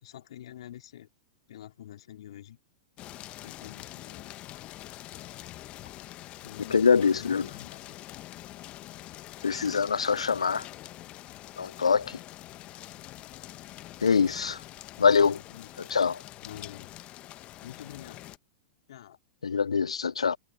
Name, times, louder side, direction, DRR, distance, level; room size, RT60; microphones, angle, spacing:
voice 1, 0.0-1.1 1.5-2.6 3.4-4.3 6.4-6.8 7.1-7.9 15.2-15.7 16.4-16.9 17.6-18.3 18.9-19.2, left 12 dB, 70° left, 3.4 m, -46 dB
sound 1, 3.0-18.4, left 15 dB, 40° left, 1.3 m, -45 dB
voice 2, 6.7-7.4 9.4-10.6 11.6-12.2 14.0-14.6 15.0-15.4 15.9-16.2 19.4-20.4, left 6 dB, 90° left, 0.4 m, -24 dB
hypercardioid pair, 105°, 3 cm